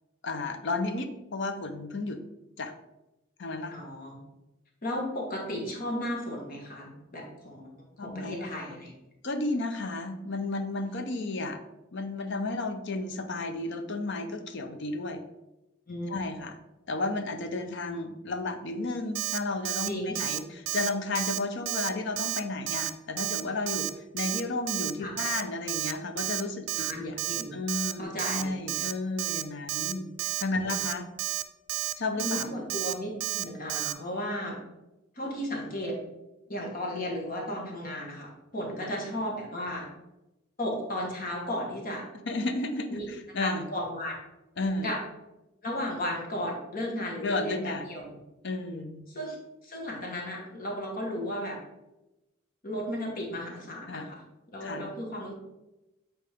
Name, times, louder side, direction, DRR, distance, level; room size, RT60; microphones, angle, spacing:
voice 1, 0.2-2.2 2.6-2.7 3.4-3.7 8.0-8.8 9.2-11.6 11.9-15.2 16.1-16.5 16.9-20.4 20.7-23.9 24.1-27.2 27.5-30.1 30.4-31.1 32.0-32.5 38.8-38.9 42.3-43.6 44.6-44.9 47.2-47.8 48.4-49.0 53.9-54.1 54.6-54.9, left 2 dB, 60° left, 7 dB, 0.7 m, -33 dB
voice 2, 3.7-4.2 4.8-7.7 8.0-8.9 15.9-16.1 19.9-20.2 25.0-25.1 26.7-27.5 28.0-28.6 30.6-30.8 32.1-34.6 35.1-36.0 36.5-39.9 40.6-42.0 42.9-43.1 43.4-44.2 44.8-45.0 45.6-48.2 49.1-49.4 49.6-51.6 52.6-54.2 54.5-55.3, left 1 dB, 45° left, -1 dB, 1.4 m, -34 dB
Alarm, 19.1-19.4 19.6-19.9 20.1-20.4 20.7-20.9 21.1-21.4 21.6-21.9 22.2-22.4 22.7-22.9 23.2-23.4 23.7-23.9 24.2-24.4 24.7-24.9 25.2-25.4 25.7-25.9 26.2-26.4 26.7-26.9 27.2-27.4 27.7-27.9 28.2-28.4 28.7-28.9 29.2-29.4 29.7-29.9 30.2-30.4 30.7-30.9 31.2-31.4 31.7-31.9 32.2-32.4 32.7-32.9 33.2-33.4 33.7-33.9, right 13 dB, 85° right, 0.4 m, -31 dB
7.6 x 4.3 x 3.5 m, 0.98 s
head